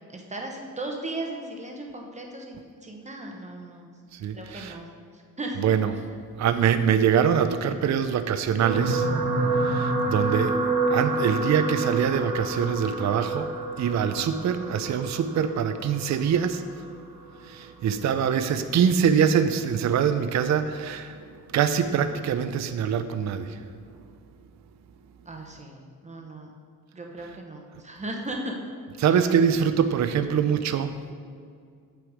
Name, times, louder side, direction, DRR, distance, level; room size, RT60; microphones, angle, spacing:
voice 1, 0.1-3.9 4.3-4.9 5.1-5.7 25.3-26.5 26.9-28.5 29.0-29.2, right 2 dB, 20° right, 1 dB, 0.9 m, -37 dB
voice 2, 4.1-4.8 5.6-5.9 6.4-9.1 9.5-10.6 10.9-16.9 17.3-24.0 29.0-31.0, right 7 dB, 55° right, 10 dB, 0.5 m, -24 dB
sound 1, 8.6-17.1 17.8-18.1 18.3-18.4, right 2 dB, 75° right, 0.9 m, -28 dB
7.7 x 6.2 x 4.8 m, 2.2 s
wide cardioid pair, 140°, 35 cm